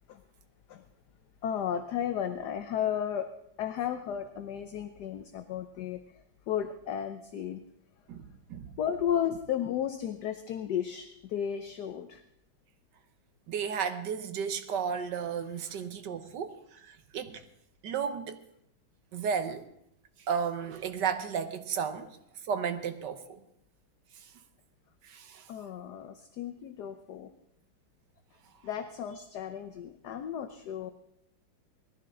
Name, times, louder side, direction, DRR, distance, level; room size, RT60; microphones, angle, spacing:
voice 1, 1.4-7.6 8.8-12.2 16.2-16.3 25.5-27.3 28.6-30.9, left 9 dB, 65° left, 1.2 m, -34 dB
voice 2, 8.1-8.7 13.5-17.4 17.8-18.4 19.1-19.7 20.3-22.2 22.4-23.4 24.2-24.3 25.0-25.5, right 7 dB, 65° right, 1.5 m, -33 dB
19.5 x 14.5 x 3.8 m
omnidirectional pair, 2.2 m